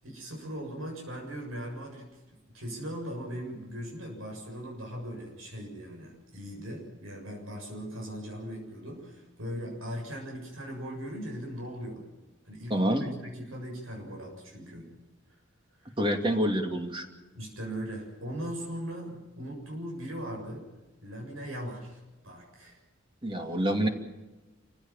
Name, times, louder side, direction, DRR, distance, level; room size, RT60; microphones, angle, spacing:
voice 1, 0.0-2.2 2.5-12.1 12.5-14.8 15.3-15.4 15.8-15.9 17.3-20.7 21.0-22.8, equal, 90° right, 0 dB, 7.3 m, -39 dB
voice 2, 12.7-13.1 16.0-17.0 23.2-23.9, equal, 25° right, 5 dB, 2.6 m, -27 dB
28.5 x 16.0 x 7.5 m, 1.1 s
head